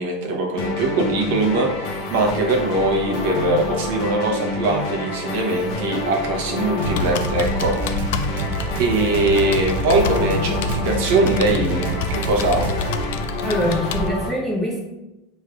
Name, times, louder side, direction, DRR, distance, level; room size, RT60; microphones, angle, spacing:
voice 1, 0.0-8.4 8.8-12.8, right 2 dB, 60° right, 0 dB, 0.8 m, -22 dB
sound 1, 0.6-14.3, left 3 dB, 45° left, 0.6 m, -28 dB
Computer keyboard, 6.8-14.1, left 4 dB, 70° left, 0.3 m, -30 dB
sound 2, 6.8-13.0, right 2 dB, 80° right, 0.4 m, -28 dB
voice 2, 13.4-14.8, right 1 dB, ahead, -5 dB, 0.7 m, -24 dB
6.1 x 3.2 x 2.4 m, 0.98 s
supercardioid pair, 175°, 0 cm